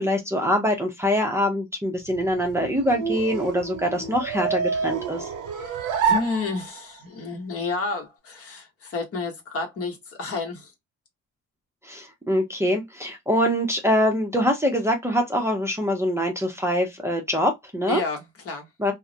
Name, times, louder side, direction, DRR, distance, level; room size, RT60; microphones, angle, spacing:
voice 1, 0.0-5.3 11.8-18.0 18.8-18.9, equal, 10° right, 0.6 m, -24 dB
sound 1, 2.0-7.0, right 6 dB, 85° right, 0.8 m, -28 dB
voice 2, 5.5-10.7 17.9-18.7, left 4 dB, 50° left, 1.0 m, -31 dB
2.2 x 2.0 x 2.7 m
cardioid pair, 90°, 30 cm